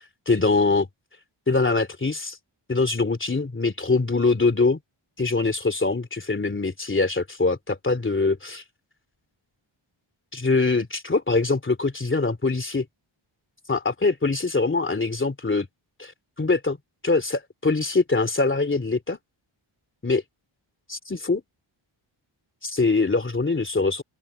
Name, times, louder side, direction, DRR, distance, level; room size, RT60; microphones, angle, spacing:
voice 1, 0.3-0.9 1.5-2.4 2.7-4.8 5.2-8.6 10.3-12.9 13.7-15.7 16.0-16.1 16.4-16.8 17.0-19.2 20.0-20.2 20.9-21.4 22.6-24.0, left 3 dB, 25° left, 2.9 m, -23 dB
open air
wide cardioid pair, 120°, 49 cm